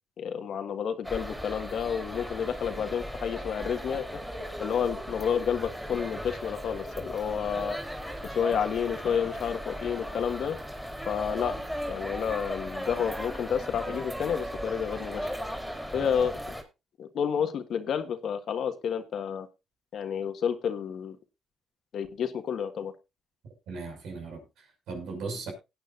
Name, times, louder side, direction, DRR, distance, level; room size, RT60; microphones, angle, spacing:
voice 1, 0.2-4.2 4.6-7.8 8.2-10.6 11.0-11.6 11.9-15.3 15.9-16.4 17.0-19.5 19.9-21.2 21.9-22.9, left 7 dB, 65° left, 1.5 m, -30 dB
sound 1, 1.0-16.6, equal, ahead, 3.5 m, -37 dB
voice 2, 23.7-25.5, right 4 dB, 80° right, 5.8 m, -38 dB
19.0 x 9.0 x 2.5 m
cardioid pair, 90°, 0 cm